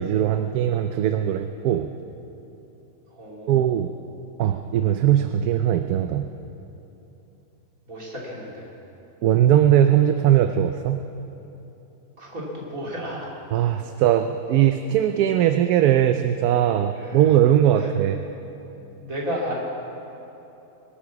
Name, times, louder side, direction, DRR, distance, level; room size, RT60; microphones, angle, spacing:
voice 1, 0.0-1.9 3.5-3.9 4.4-6.3 9.2-11.0 13.5-18.2, right 10 dB, 70° right, 8 dB, 1.0 m, -20 dB
voice 2, 3.1-4.0 7.9-8.7 12.2-13.3 16.9-17.2 17.8-17.9 19.0-19.5, equal, 55° right, -4 dB, 3.3 m, -33 dB
22.5 x 8.7 x 7.1 m, 3.0 s
omnidirectional pair, 1.8 m